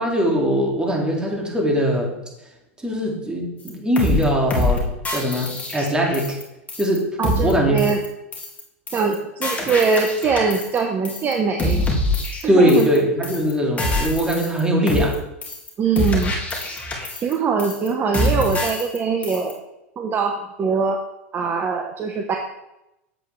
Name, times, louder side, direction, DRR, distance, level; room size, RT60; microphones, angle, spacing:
voice 1, 0.0-2.2 2.8-6.4 6.8-7.1 7.4-7.7 12.5-15.2, equal, 10° right, -1 dB, 2.2 m, -21 dB
sound 1, 3.7-3.8 4.0-4.2 4.5-4.8 5.0-6.4 6.7-7.0 7.2-7.5 7.8-8.1 8.3-8.6 8.9-9.1 9.4-10.8 11.0-11.3 11.6-13.0 13.2-13.5 13.8-14.6 14.9-15.1 15.4-15.7 16.0-17.3 17.6-17.9 18.1-19.0 19.2-19.5, left 1 dB, 20° left, 2.0 m, -25 dB
voice 2, 7.2-8.0 8.9-11.8 12.4-12.9 15.8-16.3 17.2-19.6 20.0-21.0 21.3-22.4, right 5 dB, 30° right, 3 dB, 1.0 m, -22 dB
7.9 x 7.6 x 3.2 m, 0.89 s
hypercardioid pair, 95°, 7 cm